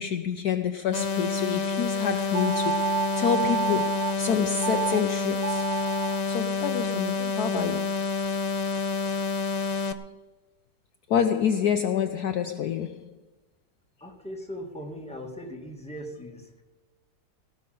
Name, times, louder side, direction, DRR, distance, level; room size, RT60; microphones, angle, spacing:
voice 1, 0.0-5.7 6.2-7.9 11.1-13.1, left 8 dB, 65° left, 1.1 m, -28 dB
sound 1, 0.9-9.9, left 4 dB, 45° left, 0.5 m, -28 dB
sound 2, 2.3-4.1 4.6-5.0 5.3-6.2, right 8 dB, 75° right, 1.6 m, -29 dB
voice 2, 14.0-16.6, equal, 5° left, 2.0 m, -39 dB
17.5 x 6.6 x 9.2 m
omnidirectional pair, 2.0 m